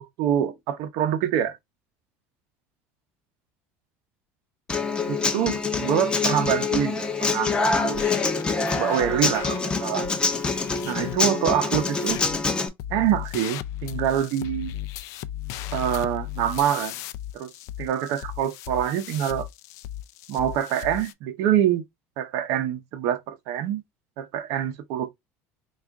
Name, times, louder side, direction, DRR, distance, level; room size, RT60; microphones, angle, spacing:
voice 1, 0.2-1.6 5.1-8.0 8.8-10.1 10.8-12.2 12.9-14.7 15.7-17.0 17.3-17.5 17.8-19.5 20.3-21.8 22.2-23.8 24.2-25.1, right 10 dB, 65° right, 0.7 m, -25 dB
Human voice / Acoustic guitar, 4.7-12.7, left 4 dB, 15° left, 0.6 m, -25 dB
sound 1, 7.9-9.6 10.0-11.2 11.7-12.4 12.8-21.1, left 13 dB, 65° left, 0.3 m, -36 dB
3.5 x 2.4 x 3.5 m
cardioid pair, 135°, 6 cm